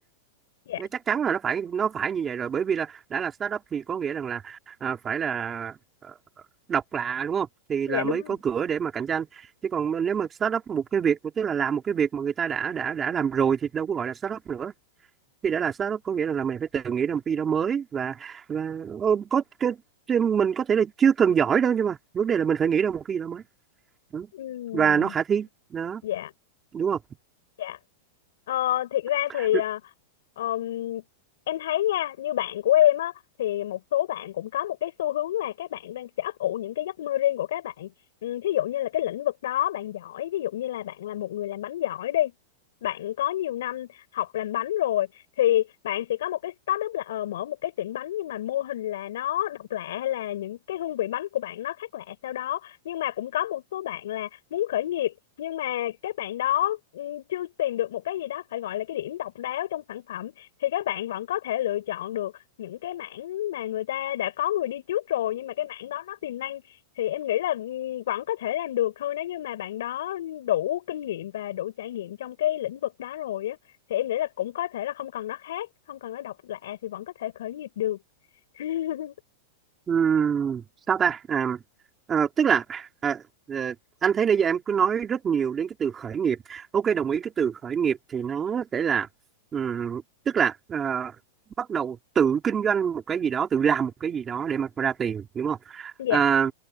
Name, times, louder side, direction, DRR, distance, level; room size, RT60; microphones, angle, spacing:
voice 1, 0.8-6.1 6.7-14.7 15.4-19.8 20.1-23.4 24.1-24.3 24.7-26.0 26.7-27.0 29.4-29.5 79.9-81.6 82.1-83.8 84.0-89.1 89.5-91.2 91.6-96.5, right 7 dB, 15° right, 4.0 m, -26 dB
voice 2, 7.9-8.4 24.3-25.1 26.0-26.3 27.6-27.8 28.5-29.8 30.4-31.0 31.5-33.1 33.4-37.9 38.2-42.3 42.8-45.1 45.4-62.3 62.6-66.7 67.0-73.6 73.9-78.0 78.6-79.1 96.0-96.2, left 12 dB, 70° left, 7.8 m, -29 dB
supercardioid pair, 155°, 0 cm